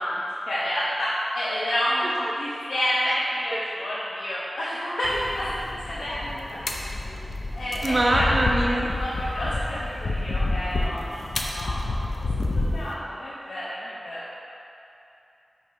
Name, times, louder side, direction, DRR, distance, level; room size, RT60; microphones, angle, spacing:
voice 1, 0.0-6.6 7.1-7.2 7.5-12.0 12.5-14.3, equal, 85° left, -10 dB, 1.0 m, -29 dB
sound 1, 5.0-12.9, left 2 dB, 65° left, 0.7 m, -29 dB
voice 2, 7.8-8.9, right 1 dB, 40° right, 0 dB, 0.7 m, -23 dB
5.3 x 5.0 x 5.6 m, 2.8 s
wide cardioid pair, 90°, 0 cm